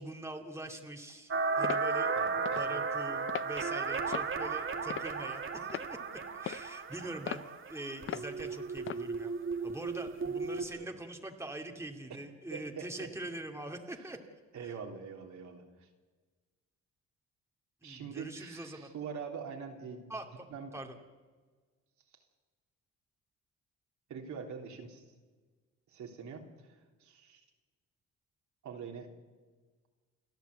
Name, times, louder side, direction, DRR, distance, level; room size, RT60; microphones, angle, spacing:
voice 1, 0.0-2.1 2.5-6.0 6.3-9.3 9.6-14.2 14.6-14.8 17.8-18.9 20.1-20.5 20.7-21.0, right 1 dB, 10° right, 3 dB, 2.3 m, -43 dB
sound 1, 1.3-10.7, right 4 dB, 45° right, 2.0 m, -35 dB
sound 2, 1.6-1.9 2.5-2.7 3.3-3.5 4.1-4.4 4.9-5.3 5.7-5.9 6.5-6.7 7.3-7.5 8.1-8.3 8.9-9.0, left 10 dB, 45° left, 0.5 m, -38 dB
voice 2, 2.1-2.8 7.0-7.1 10.5-10.9 12.5-13.1 13.9-14.1 14.5-15.9 17.8-20.1 20.5-20.8 24.1-25.0 25.9-27.4 28.6-29.1, right 6 dB, 70° right, 1 dB, 3.4 m, -44 dB
29.5 x 11.0 x 8.2 m, 1.4 s
cardioid pair, 90°, 30 cm